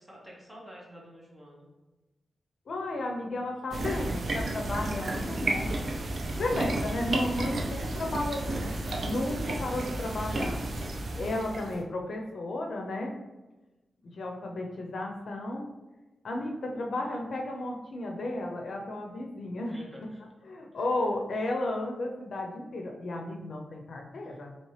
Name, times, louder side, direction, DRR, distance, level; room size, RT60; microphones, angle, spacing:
voice 1, 0.0-1.7 19.5-20.2 20.7-20.8, equal, 15° right, -3 dB, 1.2 m, -48 dB
voice 2, 2.7-5.7 6.2-10.6 11.2-13.1 14.0-15.6 16.2-19.7 20.4-24.5, left 2 dB, 65° left, 1 dB, 0.6 m, -33 dB
sound 1, 3.7-11.8, right 2 dB, 55° right, 0.5 m, -32 dB
4.3 x 2.9 x 3.2 m, 1.1 s
wide cardioid pair, 115°, 0 cm